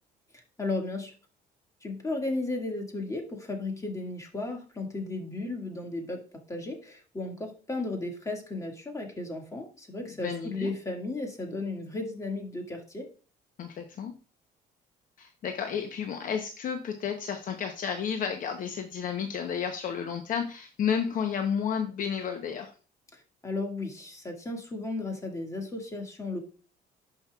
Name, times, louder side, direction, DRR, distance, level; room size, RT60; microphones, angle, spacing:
voice 1, 0.3-1.1 1.8-6.2 6.5-13.1 23.1-26.4, left 2 dB, 20° left, 2 dB, 2.0 m, -34 dB
voice 2, 10.2-10.7 13.6-14.1 15.2-22.7, left 7 dB, 55° left, 6 dB, 0.8 m, -32 dB
11.0 x 5.5 x 2.4 m, 0.36 s
cardioid pair, 110°, 17 cm